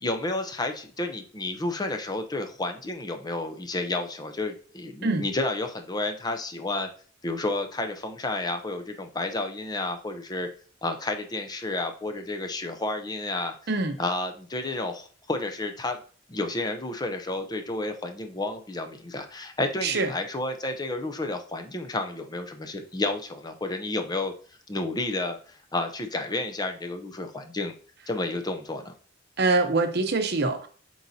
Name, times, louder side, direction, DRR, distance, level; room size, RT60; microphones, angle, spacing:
voice 1, 0.0-6.9 7.2-10.5 10.8-13.5 14.0-16.0 16.3-24.3 24.7-27.7 28.1-28.9, left 2 dB, 20° left, 5 dB, 0.7 m, -31 dB
voice 2, 29.4-30.7, right 3 dB, 60° right, 7 dB, 0.8 m, -24 dB
8.0 x 4.7 x 2.7 m, 0.43 s
head